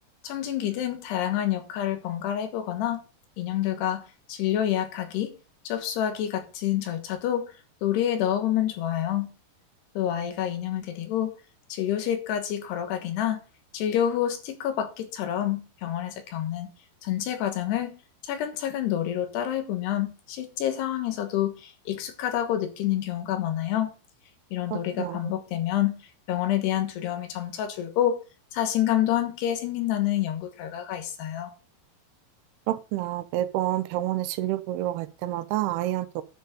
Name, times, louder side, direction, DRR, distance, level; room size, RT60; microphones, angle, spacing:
voice 1, 0.2-3.0 3.4-5.3 5.7-7.5 7.8-9.3 10.0-11.3 11.7-13.4 13.7-16.7 17.0-18.0 18.2-23.9 24.5-26.0 26.3-28.2 28.5-31.5, left 11 dB, 80° left, 3.4 m, -28 dB
voice 2, 32.7-36.2, right 14 dB, 80° right, 2.5 m, -28 dB
10.5 x 6.8 x 5.2 m
omnidirectional pair, 4.8 m